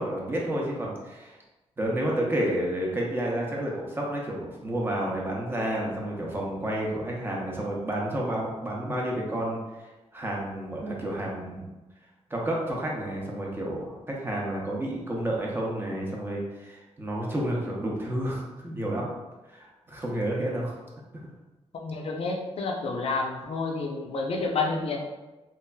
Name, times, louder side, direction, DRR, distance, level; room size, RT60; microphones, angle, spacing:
voice 1, 0.0-1.4 1.8-11.7 12.3-19.1 19.5-20.8 21.1-21.3, right 1 dB, 20° right, -3 dB, 0.6 m, -30 dB
voice 2, 21.7-25.0, left 3 dB, 60° left, 1 dB, 0.5 m, -29 dB
3.1 x 2.4 x 2.2 m, 1.1 s
wide cardioid pair, 120°, 11 cm